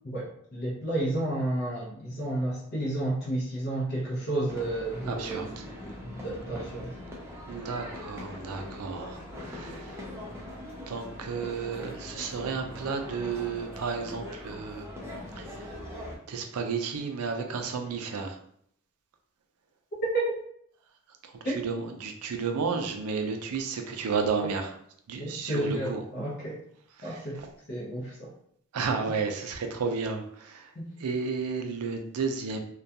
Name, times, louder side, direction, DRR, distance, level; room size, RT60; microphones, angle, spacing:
voice 1, 0.0-5.5 5.8-6.9 20.1-20.3 21.4-21.6 25.2-26.6 27.0-27.4 27.7-28.3 30.8-30.9, right 1 dB, 45° left, -5 dB, 0.6 m, -31 dB
sound 1, 4.5-16.2, left 1 dB, 10° right, 0.4 m, -41 dB
voice 2, 5.1-5.7 7.5-10.0 10.9-14.9 15.4-15.7 16.3-18.4 21.2-24.7 25.1-26.0 27.0-27.5 28.7-30.7 31.0-32.6, right 5 dB, 85° right, 5 dB, 0.4 m, -32 dB
2.2 x 2.2 x 2.7 m, 0.67 s
head